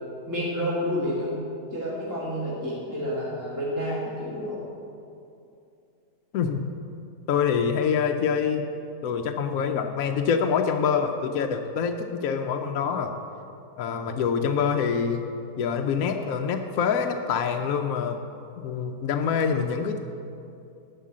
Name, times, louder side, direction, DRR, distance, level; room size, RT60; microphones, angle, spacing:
voice 1, 0.3-1.4 1.7-4.7, equal, 10° right, -7 dB, 1.7 m, -29 dB
voice 2, 7.3-8.6 9.0-13.1 13.8-15.2 15.6-18.2 18.6-20.0, left 6 dB, 70° left, 4 dB, 1.0 m, -25 dB
11.0 x 5.7 x 7.3 m, 2.6 s
omnidirectional pair, 1.6 m